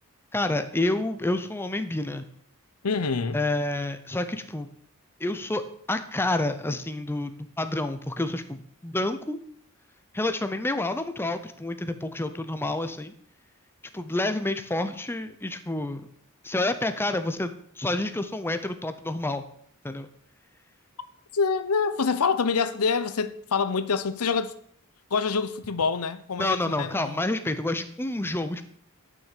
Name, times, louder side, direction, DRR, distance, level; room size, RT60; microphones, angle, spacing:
voice 1, 0.3-2.2 3.3-4.7 5.2-5.6 5.9-9.4 10.1-13.1 13.9-16.1 16.4-19.4 19.8-20.1 26.4-28.6, left 2 dB, 10° left, 0.6 m, -29 dB
voice 2, 2.8-3.4 21.3-24.5 25.1-27.2, left 5 dB, 90° left, 0.7 m, -26 dB
9.2 x 6.2 x 6.7 m
head